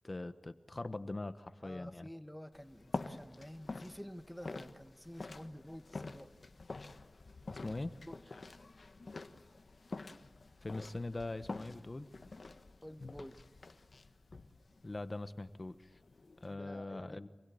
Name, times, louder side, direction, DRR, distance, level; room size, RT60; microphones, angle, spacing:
voice 1, 0.0-2.1 7.5-7.9 10.6-12.1 14.8-15.9 16.4-17.3, left 2 dB, 40° left, 11 dB, 1.1 m, -42 dB
voice 2, 1.6-6.3 7.6-8.2 12.8-13.4 16.5-17.2, equal, 5° left, 10 dB, 1.3 m, -50 dB
sound 1, 2.5-16.5, left 3 dB, 70° left, 1.4 m, -48 dB
27.0 x 21.5 x 9.4 m, 1.1 s
wide cardioid pair, 55°, 0 cm